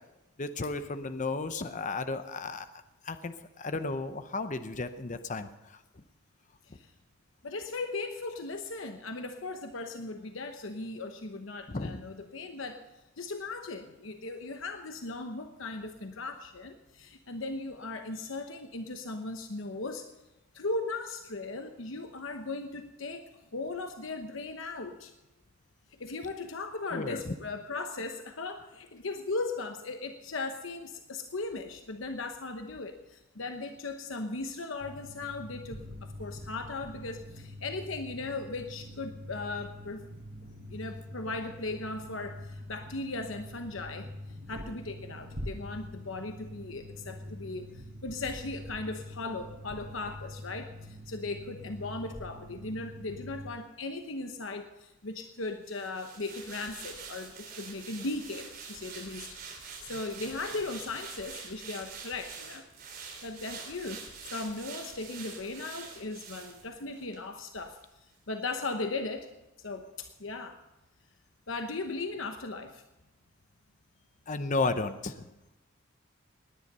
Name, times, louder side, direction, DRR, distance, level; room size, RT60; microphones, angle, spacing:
voice 1, 0.4-2.7 3.0-5.8 11.7-12.0 26.9-27.3 74.3-75.2, left 3 dB, 40° left, 10 dB, 0.7 m, -33 dB
voice 2, 7.4-12.8 13.2-20.1 20.5-25.1 25.9-40.2 40.7-59.3 59.5-67.8 68.3-69.3 69.6-70.6 71.5-72.8, left 3 dB, 75° left, 6 dB, 1.0 m, -38 dB
sound 1, 34.8-53.5, equal, 80° right, 3.4 m, -45 dB
sound 2, 55.6-67.2 67.6-67.7, right 5 dB, 50° right, 3.8 m, -45 dB
18.5 x 10.5 x 5.4 m, 1.0 s
head